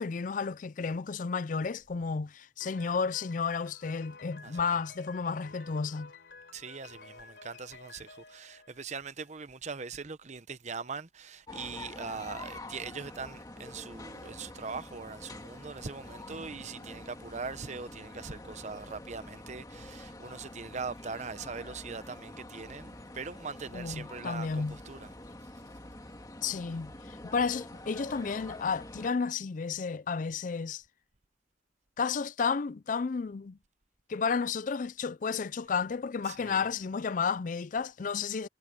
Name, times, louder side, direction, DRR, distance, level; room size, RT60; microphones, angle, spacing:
voice 1, 0.0-6.1 23.7-24.8 26.4-30.8 32.0-33.6 34.1-38.5, left 5 dB, 45° left, 0.4 m, -32 dB
Piano, 2.6-9.4, left 4 dB, 60° left, 4.6 m, -52 dB
voice 2, 4.4-4.8 6.5-25.1 36.3-36.7, right 4 dB, 40° right, 0.8 m, -41 dB
sound 1, 11.5-29.1, left 1 dB, 20° left, 2.0 m, -46 dB
Acoustic guitar, 16.3-20.2, right 2 dB, 85° right, 4.0 m, -59 dB
head